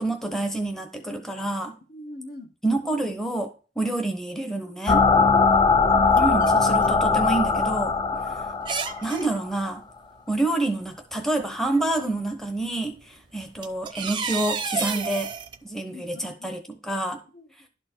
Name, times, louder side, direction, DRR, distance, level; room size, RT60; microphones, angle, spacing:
voice 1, 0.0-1.8 2.6-3.5 3.8-5.1 6.1-7.9 9.0-9.8 10.3-15.3 15.6-17.2, right 2 dB, 5° left, 0.8 m, -28 dB
voice 2, 1.9-2.5 5.4-6.0 15.8-16.6 17.3-17.7, left 1 dB, 55° left, 1.5 m, -43 dB
sound 1, 4.9-9.5, left 4 dB, 25° left, 0.4 m, -20 dB
sound 2, 5.1-5.2 5.9-7.0 7.3-7.4 8.0-8.1 8.6-9.3 10.7-10.8 11.4-11.8 13.0-13.1 13.4-15.6, right 6 dB, 30° right, 0.6 m, -31 dB
11.5 x 4.4 x 4.4 m
head